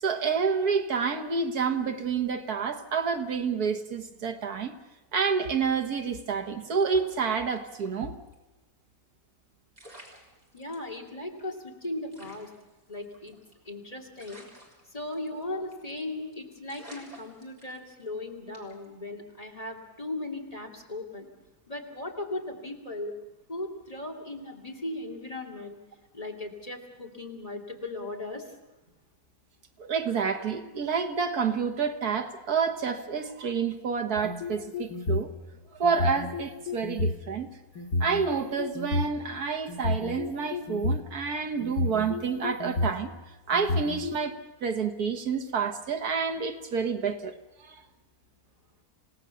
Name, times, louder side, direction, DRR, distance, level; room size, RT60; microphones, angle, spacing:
voice 1, 0.0-4.7 5.1-8.1 29.8-35.3 35.8-37.5 38.0-43.1 43.5-44.4 44.6-47.3 47.6-47.8, right 5 dB, 90° right, 7 dB, 2.0 m, -28 dB
sound 1, 6.7-7.9 8.3-8.4 9.4-9.5 9.7-10.9 11.4-11.5 11.7-11.8 12.1-13.7 14.2-15.4 15.7-16.0 16.3-16.4 16.7-18.1 18.5-18.8, right 1 dB, 25° right, 4.1 m, -51 dB
voice 2, 10.5-12.5 12.9-13.4 13.6-14.5 14.9-21.3 21.7-23.1 23.5-25.8 26.1-28.5, left 2 dB, 25° left, 0 dB, 2.7 m, -37 dB
sound 2, 34.2-35.3 35.8-37.1 37.8-39.1 39.7-41.1 41.6-43.0 43.5-44.2, left 2 dB, 85° left, 2.0 m, -30 dB
27.5 x 18.0 x 7.1 m, 1.1 s
omnidirectional pair, 1.6 m